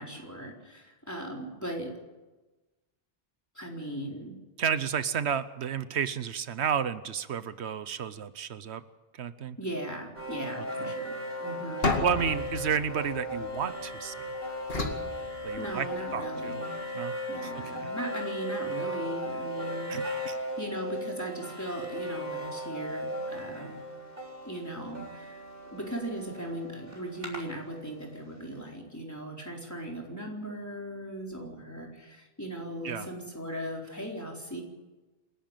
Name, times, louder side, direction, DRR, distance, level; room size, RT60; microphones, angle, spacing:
voice 1, 0.0-2.0 3.5-4.4 9.6-11.1 11.4-12.0 15.0-16.7 17.3-23.8 24.5-25.4 25.6-34.6, right 1 dB, 15° left, -1 dB, 4.2 m, -38 dB
voice 2, 4.6-8.8 9.1-9.6 10.6-10.9 12.0-14.3 15.4-16.6 16.9-17.1 17.4-17.9 19.9-20.4 32.8-33.1, right 7 dB, 85° right, 14 dB, 1.1 m, -32 dB
sound 1, 10.1-28.1, equal, 55° right, 4.0 m, -37 dB
sound 2, 11.8-14.0 14.7-16.1, left 3 dB, 65° left, 2.5 m, -33 dB
28.0 x 11.5 x 9.1 m, 1.2 s
omnidirectional pair, 1.1 m